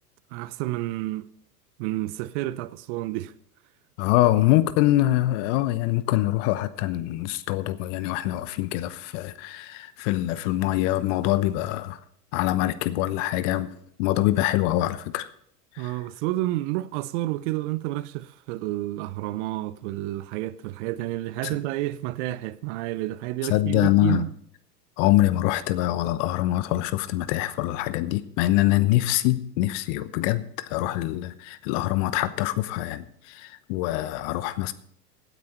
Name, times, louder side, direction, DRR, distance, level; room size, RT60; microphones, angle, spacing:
voice 1, 0.3-1.3 1.8-3.3 15.8-24.3, right 16 dB, 50° right, 0.7 m, -30 dB
voice 2, 4.0-12.0 12.3-13.7 14.0-15.3 15.8-15.9 21.4-21.5 23.5-24.2 25.0-34.7, left 15 dB, 50° left, 1.0 m, -24 dB
17.0 x 9.4 x 4.3 m
hypercardioid pair, 95°, 47 cm